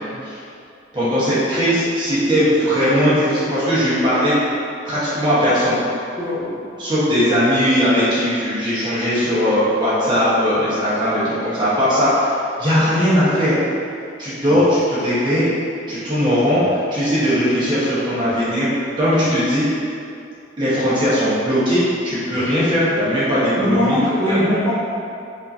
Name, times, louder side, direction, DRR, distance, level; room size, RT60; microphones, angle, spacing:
voice 1, 0.9-4.4 4.8-5.8 6.8-13.6 14.2-15.5 15.9-16.6 16.9-18.7 19.0-19.8 20.6-24.0 24.2-24.4, equal, 25° right, -11 dB, 1.2 m, -18 dB
voice 2, 6.2-6.8 14.5-14.6 17.2-17.4 23.6-24.8, equal, 15° left, -12 dB, 1.0 m, -21 dB
5.2 x 2.9 x 2.7 m, 2.5 s
head